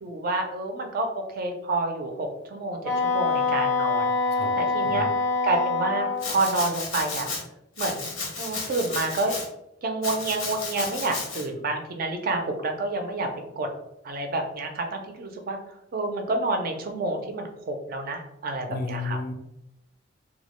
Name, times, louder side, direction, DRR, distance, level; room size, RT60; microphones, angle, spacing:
voice 1, 0.0-2.8 3.0-5.1 5.4-7.3 7.8-8.1 8.4-9.3 9.8-13.3 13.6-13.7 14.0-15.6 15.9-19.2, right 2 dB, 45° right, 4 dB, 0.4 m, -29 dB
Wind instrument woodwind instrument, 2.8-6.3, left 3 dB, 5° right, 0.6 m, -25 dB
voice 2, 4.3-5.1 18.7-19.3, left 3 dB, 50° left, 4 dB, 0.4 m, -33 dB
Domestic sounds home sounds, 6.2-7.4 7.8-9.5 10.0-11.4, left 3 dB, 85° left, 0.7 m, -33 dB
2.3 x 2.0 x 2.9 m, 0.84 s
head